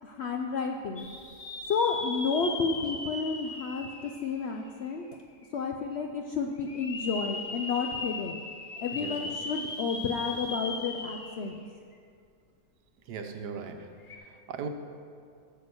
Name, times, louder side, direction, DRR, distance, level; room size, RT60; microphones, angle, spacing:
voice 1, 0.0-1.1 1.7-5.1 5.5-8.4 8.8-11.6, left 5 dB, 70° left, 2 dB, 0.6 m, -31 dB
sound 1, 1.0-4.9 5.4-5.5 6.6-11.6 11.9-12.0 14.0-14.2, left 3 dB, 40° left, 0.9 m, -38 dB
voice 2, 13.1-13.9 14.2-14.7, right 6 dB, 90° right, 5 dB, 1.4 m, -38 dB
8.5 x 7.1 x 6.8 m, 2.3 s
omnidirectional pair, 1.7 m